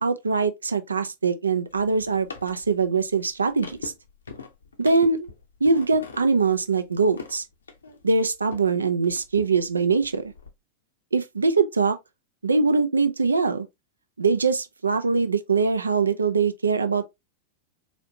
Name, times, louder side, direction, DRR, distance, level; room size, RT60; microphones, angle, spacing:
voice 1, 0.0-3.9 4.8-5.3 5.6-7.4 8.0-10.3 11.1-12.0 12.4-13.7 14.2-17.1, right 4 dB, 75° right, 0.4 m, -22 dB
sound 1, 1.7-8.7 9.0-10.5, left 4 dB, 75° left, 0.6 m, -42 dB
4.1 x 2.8 x 2.7 m
figure-of-eight pair, 90°, 0 cm